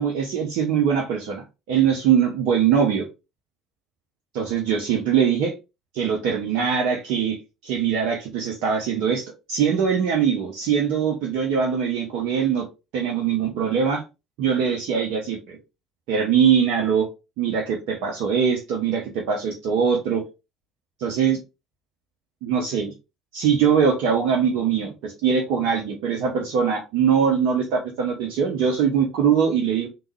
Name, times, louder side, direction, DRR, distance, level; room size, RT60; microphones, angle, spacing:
voice 1, 0.0-3.1 4.3-5.5 5.9-7.4 7.6-12.7 12.9-14.0 14.4-15.6 16.1-17.1 17.4-20.2 21.0-21.4 22.4-22.9 23.3-29.9, right 7 dB, 60° right, 0.8 m, -22 dB
3.7 x 3.0 x 3.0 m
figure-of-eight pair, 55°, 0 cm